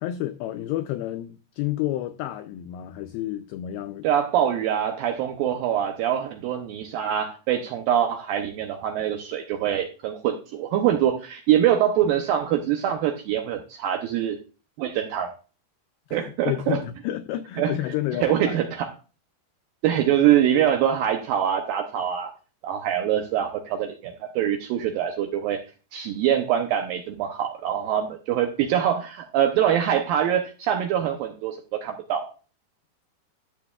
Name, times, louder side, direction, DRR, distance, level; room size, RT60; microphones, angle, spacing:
voice 1, 0.0-4.1 16.1-18.6, left 14 dB, 90° left, 9 dB, 2.1 m, -30 dB
voice 2, 4.0-14.4 14.8-15.3 16.1-16.8 17.6-17.8 18.2-18.9 19.8-22.3 22.6-25.6 25.9-32.3, right 10 dB, 80° right, 4 dB, 2.1 m, -24 dB
12.0 x 7.2 x 2.3 m, 0.34 s
omnidirectional pair, 4.8 m